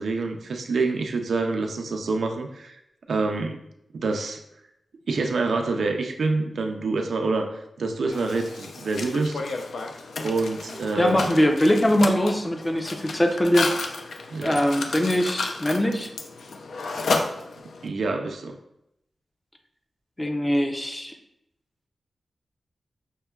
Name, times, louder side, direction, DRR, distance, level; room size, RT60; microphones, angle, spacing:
voice 1, 0.0-2.8 3.1-3.6 3.9-4.4 5.1-9.4 10.2-11.2 14.3-14.6 17.8-18.6, right 3 dB, 75° right, 4 dB, 0.4 m, -26 dB
Mechanisms, 8.1-17.9, left 3 dB, 90° left, 0.3 m, -32 dB
voice 2, 11.0-13.7 14.4-16.1 20.2-21.1, equal, 15° left, 4 dB, 0.4 m, -22 dB
5.3 x 2.1 x 2.2 m, 0.82 s
wide cardioid pair, 120°, 0 cm